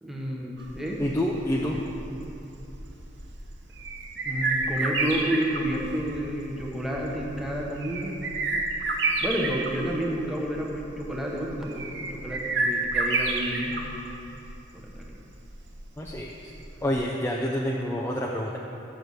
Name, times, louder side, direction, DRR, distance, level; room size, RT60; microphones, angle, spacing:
voice 1, 0.0-1.0 4.2-8.2 9.2-13.8 14.7-15.1 17.8-18.0, equal, ahead, -3 dB, 0.8 m, -30 dB
sound 1, 0.6-17.0, right 3 dB, 70° right, 0.8 m, -31 dB
voice 2, 1.0-1.8 16.0-16.3 16.8-18.6, equal, 15° left, -2 dB, 0.4 m, -27 dB
6.5 x 6.1 x 6.8 m, 2.9 s
head